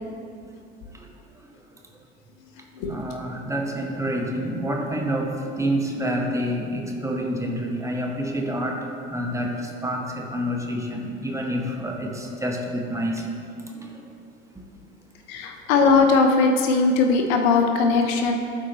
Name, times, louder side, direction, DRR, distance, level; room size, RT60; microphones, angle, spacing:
voice 1, 2.8-13.3 13.7-14.0, equal, 10° right, 0 dB, 0.9 m, -28 dB
voice 2, 15.3-18.3, left 4 dB, 60° left, 4 dB, 0.9 m, -19 dB
12.5 x 4.7 x 2.9 m, 2.5 s
hypercardioid pair, 75°, 35 cm